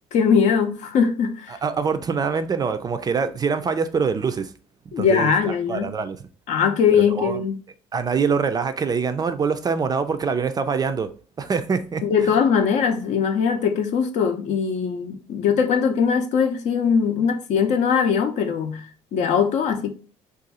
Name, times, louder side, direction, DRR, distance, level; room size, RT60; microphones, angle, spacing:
voice 1, 0.1-1.6 4.9-5.9 6.5-7.6 12.0-19.9, left 6 dB, 60° left, 0.6 m, -21 dB
voice 2, 1.5-4.5 5.0-6.2 6.9-7.4 7.9-11.1 11.4-12.0, right 5 dB, 30° right, 0.4 m, -24 dB
2.6 x 2.3 x 4.0 m
supercardioid pair, 80°, 14 cm